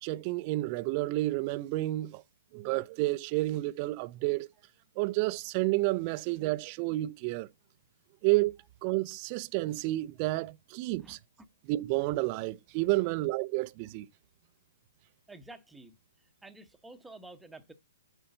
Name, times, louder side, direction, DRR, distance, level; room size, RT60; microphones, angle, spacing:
voice 1, 0.0-2.2 2.5-4.5 5.0-7.5 8.2-8.5 8.8-11.2 11.7-14.1, right 19 dB, 35° right, 0.5 m, -30 dB
voice 2, 11.0-11.5 13.0-13.1 15.3-17.7, right 2 dB, 5° right, 0.9 m, -51 dB
7.8 x 4.4 x 3.8 m
hypercardioid pair, 140°, 0 cm